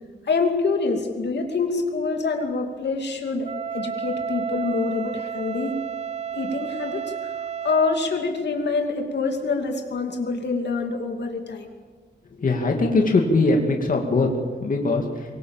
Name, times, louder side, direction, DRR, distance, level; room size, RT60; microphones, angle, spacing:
voice 1, 0.2-5.8 6.3-11.7, left 4 dB, 65° left, 3 dB, 2.7 m, -26 dB
Wind instrument woodwind instrument, 3.4-8.1, right 7 dB, 35° right, 0.7 m, -31 dB
voice 2, 12.4-14.3 14.6-15.0, left 3 dB, 45° left, 1 dB, 2.5 m, -20 dB
24.0 x 23.0 x 7.3 m, 1.5 s
wide cardioid pair, 175°, 19 cm